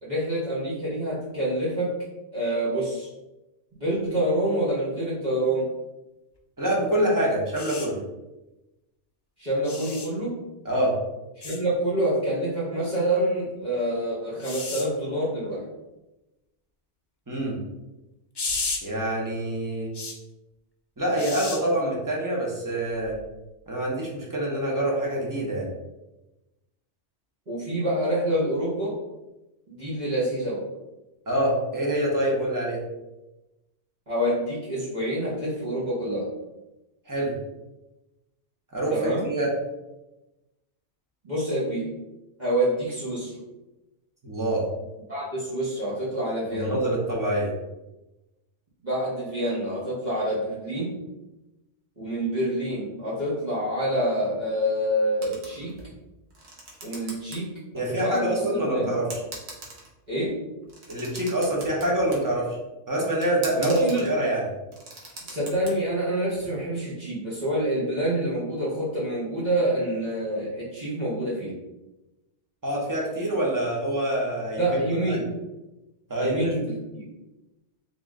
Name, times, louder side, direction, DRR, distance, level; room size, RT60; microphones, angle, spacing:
voice 1, 0.0-1.9 2.3-3.1 3.8-5.7 9.4-10.3 11.4-15.6 27.5-29.0 29.7-30.6 34.1-36.3 38.9-39.2 41.2-41.9 42.4-43.4 45.1-46.8 48.8-50.9 52.0-55.7 56.8-57.5 57.7-58.9 60.1-60.4 63.5-64.1 65.3-71.5 74.6-75.3 76.2-77.1, right 1 dB, 40° right, -10 dB, 1.3 m, -27 dB
voice 2, 6.6-8.0 10.6-11.0 17.3-17.6 18.8-19.9 21.0-23.2 23.7-25.7 31.3-32.8 37.1-37.3 38.7-39.5 44.2-44.7 46.5-47.5 57.7-59.0 60.9-62.6 62.9-64.4 72.6-74.8 75.1-75.2 76.1-76.5, right 1 dB, 20° right, -3 dB, 0.9 m, -26 dB
sound 1, 7.5-7.9 9.6-10.1 11.4-11.6 14.4-14.8 18.3-18.8 19.9-20.1 21.2-21.6 23.1-23.2, left 3 dB, 35° left, 0.4 m, -32 dB
sound 2, 55.2-55.9 56.3-57.4 57.7-57.8 58.6-58.7 59.1-60.1 60.6-62.2 63.2-64.1 64.5-65.7, right 2 dB, 65° right, 1.2 m, -41 dB
3.6 x 2.9 x 3.6 m, 1.0 s
omnidirectional pair, 1.2 m